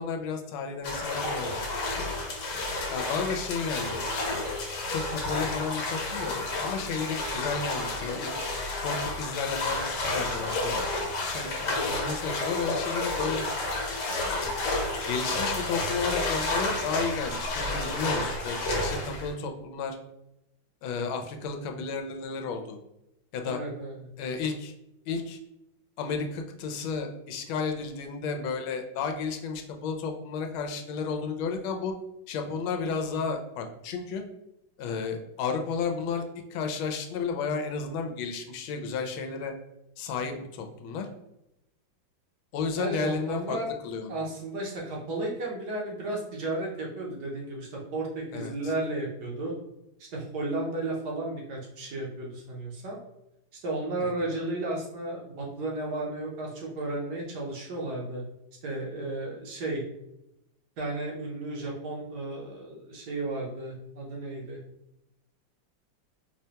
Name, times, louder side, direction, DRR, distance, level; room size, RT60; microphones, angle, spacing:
voice 1, 0.0-2.1 2.9-4.4 4.9-8.3 8.8-13.4 14.3-14.7 15.1-20.0 20.8-22.8 23.3-23.6 24.2-24.7 25.1-25.4 26.0-31.9 32.3-34.2 34.8-36.2 36.5-39.5 40.0-41.1 42.5-43.6 43.8-44.2 48.3-48.7 54.0-54.1, left 5 dB, 90° left, 4 dB, 1.4 m, -33 dB
sound 1, 0.8-19.3, left 2 dB, 65° left, 1.3 m, -31 dB
voice 2, 23.5-24.0 42.8-43.7 44.1-49.5 50.1-53.0 53.5-58.2 58.6-59.8 60.8-64.6, right 2 dB, 65° right, -2 dB, 1.2 m, -33 dB
4.8 x 2.2 x 2.8 m, 0.86 s
omnidirectional pair, 2.1 m